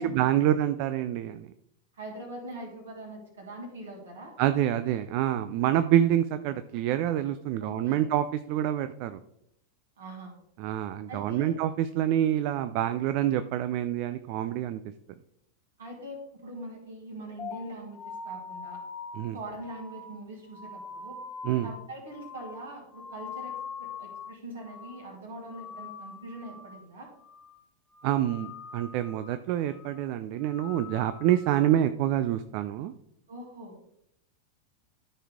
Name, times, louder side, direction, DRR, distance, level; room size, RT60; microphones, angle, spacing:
voice 1, 0.0-1.5 4.4-9.2 10.6-14.8 19.2-19.4 21.4-21.7 28.0-32.9, right 11 dB, 45° right, 11 dB, 0.4 m, -27 dB
voice 2, 1.9-4.3 7.6-8.1 10.0-10.4 11.1-11.6 15.8-18.8 19.3-21.2 21.6-27.1 33.3-33.8, right 1 dB, 65° right, 0 dB, 2.9 m, -42 dB
sound 1, 17.4-24.4 24.6-25.1 25.4-26.9 27.2-27.6 27.9-29.4 29.7-30.1 30.4-31.8, left 5 dB, 20° left, 1.1 m, -43 dB
13.0 x 4.6 x 3.6 m, 0.76 s
figure-of-eight pair, 90°, 0 cm